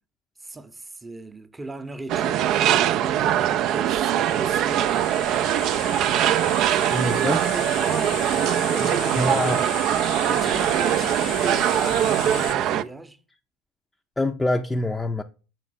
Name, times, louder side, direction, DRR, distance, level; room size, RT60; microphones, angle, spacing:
voice 1, 0.4-5.5 6.2-9.7 10.3-13.2, right 3 dB, 15° right, 0.8 m, -37 dB
sound 1, 2.1-12.8, right 11 dB, 50° right, 0.4 m, -22 dB
sound 2, 3.4-12.5, left 13 dB, 60° left, 0.6 m, -36 dB
voice 2, 6.9-7.4 8.8-8.9 9.2-9.6 14.2-15.2, left 1 dB, 10° left, 0.5 m, -25 dB
6.3 x 4.6 x 5.6 m
hypercardioid pair, 75°, 0 cm